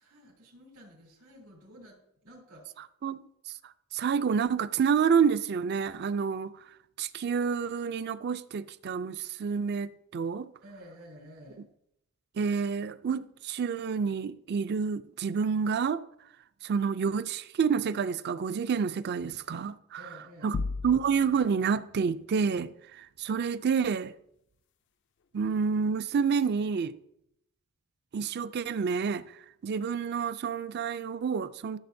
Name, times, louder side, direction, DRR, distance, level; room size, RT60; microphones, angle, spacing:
voice 1, 0.0-2.7 10.6-11.6 20.0-20.6, equal, 90° right, 3.1 m, -51 dB
voice 2, 3.0-6.6 7.0-10.5 12.4-16.0 16.6-20.6 20.8-24.1 25.3-27.0 28.1-29.2 29.6-31.8, right 6 dB, 50° right, 0.4 m, -29 dB
sound 1, 20.5-21.5, left 3 dB, 55° left, 0.4 m, -34 dB
13.5 x 6.9 x 2.7 m
head